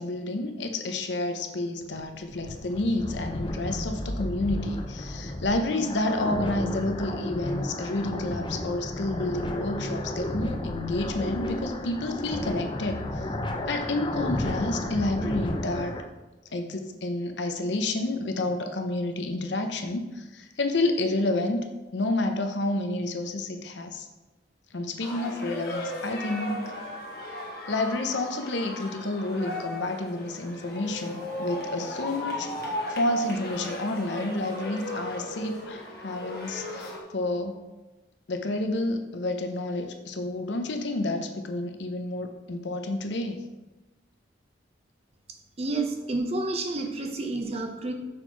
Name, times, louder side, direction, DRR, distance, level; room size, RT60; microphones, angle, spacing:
voice 1, 0.0-13.3 13.7-16.0 16.5-21.6 21.9-24.1 24.7-26.7 27.7-32.5 32.9-37.6 38.3-43.4, left 2 dB, 70° left, 6 dB, 0.7 m, -29 dB
sound 1, 1.8-16.0, left 1 dB, 25° left, 0.5 m, -33 dB
sound 2, 25.0-37.0, left 1 dB, 55° left, 1.3 m, -36 dB
voice 2, 45.6-47.9, right 2 dB, 35° right, 4 dB, 0.7 m, -29 dB
6.2 x 4.4 x 4.5 m, 1.1 s
head